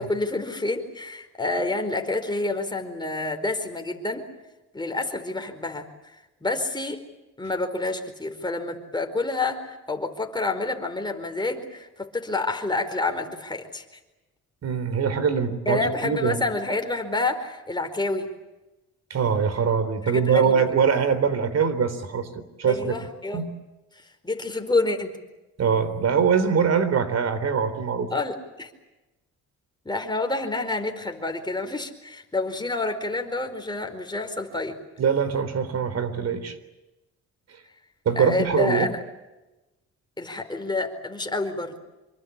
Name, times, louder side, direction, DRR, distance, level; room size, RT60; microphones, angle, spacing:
voice 1, 0.0-4.3 4.7-6.2 6.4-7.0 7.4-13.8 15.6-18.3 20.0-20.6 22.7-23.5 24.2-25.2 28.1-28.7 29.8-34.8 38.1-39.0 40.2-41.7, left 2 dB, 15° left, 5 dB, 4.6 m, -28 dB
voice 2, 14.6-16.4 19.1-23.0 23.3-23.5 25.6-28.1 35.0-36.5 38.1-38.9, right 6 dB, 55° right, 13 dB, 3.8 m, -23 dB
27.0 x 23.5 x 8.4 m, 1.0 s
cardioid pair, 90°, 30 cm